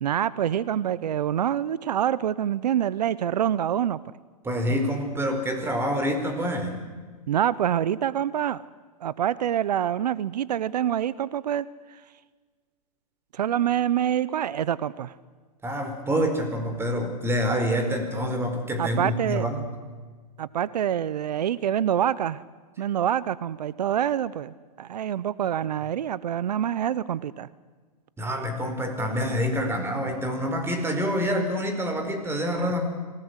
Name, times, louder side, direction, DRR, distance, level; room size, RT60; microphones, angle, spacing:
voice 1, 0.0-4.0 7.3-8.6 9.0-12.0 13.3-15.1 18.8-19.5 20.4-22.4 22.8-27.5 32.5-32.9, right 10 dB, 80° right, 19 dB, 0.8 m, -26 dB
voice 2, 4.4-6.8 15.6-19.6 28.2-32.9, equal, 10° right, 5 dB, 4.5 m, -27 dB
26.5 x 18.0 x 8.2 m, 1.5 s
hypercardioid pair, 125°, 20 cm